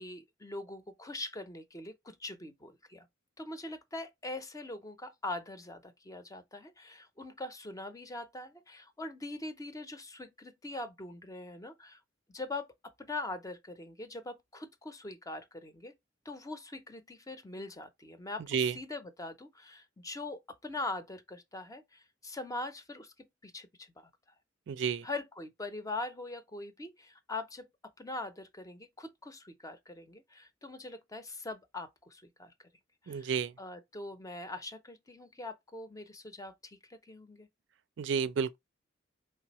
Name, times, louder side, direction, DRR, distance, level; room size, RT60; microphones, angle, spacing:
voice 1, 0.0-3.1 3.4-12.0 12.3-15.9 16.3-23.1 23.4-24.1 25.0-27.7 28.0-32.5 33.0-33.3 33.6-37.5, left 2 dB, 20° left, 0.6 m, -42 dB
voice 2, 24.7-25.1 33.1-33.5 38.0-38.6, right 6 dB, 70° right, 0.4 m, -31 dB
4.7 x 3.3 x 2.9 m
head